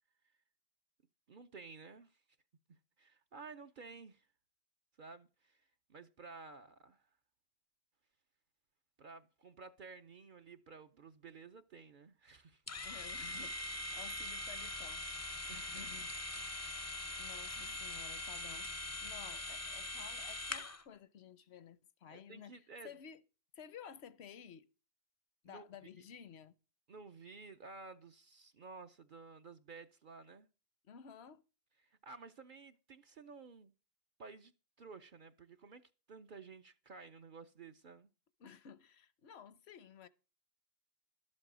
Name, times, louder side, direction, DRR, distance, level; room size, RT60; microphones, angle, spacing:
voice 1, 1.3-2.2 2.7-4.3 5.0-7.1 9.0-12.8 15.5-15.9 17.6-17.8 22.1-22.9 25.5-25.7 26.0-26.1 26.9-30.5 31.8-33.7 34.2-34.5 34.8-35.8 36.1-38.1, right 4 dB, 55° right, 0.8 m, -53 dB
sound 1, 12.7-20.8, left 1 dB, 20° left, 0.5 m, -42 dB
voice 2, 12.8-15.0 15.5-16.1 16.6-22.5 22.8-23.2 23.5-24.7 25.4-26.5 30.8-31.4 38.4-40.1, left 8 dB, 80° left, 1.1 m, -54 dB
12.5 x 7.6 x 6.1 m
omnidirectional pair, 1.1 m